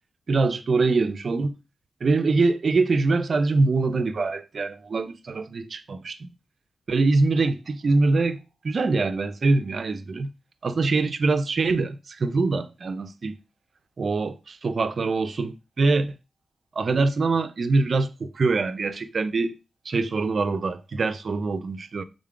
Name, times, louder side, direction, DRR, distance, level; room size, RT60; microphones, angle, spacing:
voice 1, 0.3-1.6 2.0-6.3 6.9-10.3 10.6-13.4 14.0-16.2 16.8-19.5 19.9-22.0, right 3 dB, 60° right, 0.4 m, -24 dB
3.7 x 2.3 x 3.6 m
cardioid pair, 60°, 0 cm